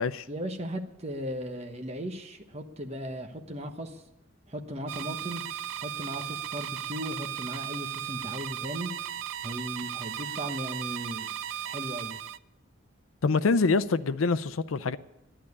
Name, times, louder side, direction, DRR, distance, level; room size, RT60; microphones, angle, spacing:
voice 1, 0.3-4.0 4.5-5.4 5.8-8.9 9.4-11.3 11.6-12.2, equal, 35° right, 1.2 m, -37 dB
sound 1, 4.9-12.4, right 10 dB, 70° right, 0.4 m, -36 dB
voice 2, 13.2-15.0, left 4 dB, 90° left, 0.6 m, -25 dB
11.0 x 10.0 x 9.7 m
head